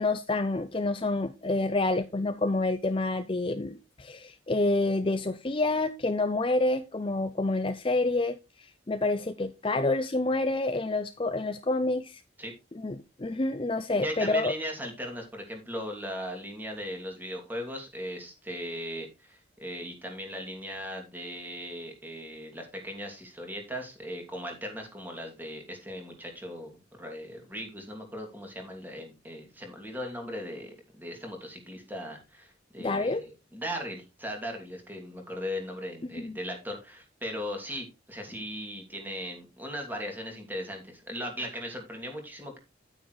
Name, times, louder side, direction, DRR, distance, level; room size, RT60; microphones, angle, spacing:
voice 1, 0.0-12.2 12.7-14.5 32.8-33.2 36.1-36.4, left 2 dB, 25° left, 9 dB, 0.5 m, -28 dB
voice 2, 14.0-42.6, equal, 10° right, 3 dB, 2.7 m, -38 dB
10.0 x 9.0 x 3.2 m, 0.26 s
head